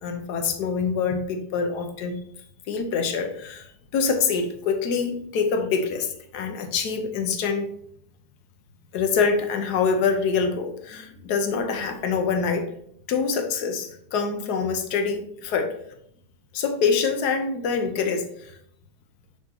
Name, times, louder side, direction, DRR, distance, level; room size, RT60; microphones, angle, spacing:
voice 1, 0.0-2.2 2.7-7.7 8.9-12.7 13.1-15.8 16.5-18.6, left 5 dB, 70° left, 6 dB, 1.4 m, -25 dB
5.9 x 5.7 x 2.8 m, 0.69 s
omnidirectional pair, 1.8 m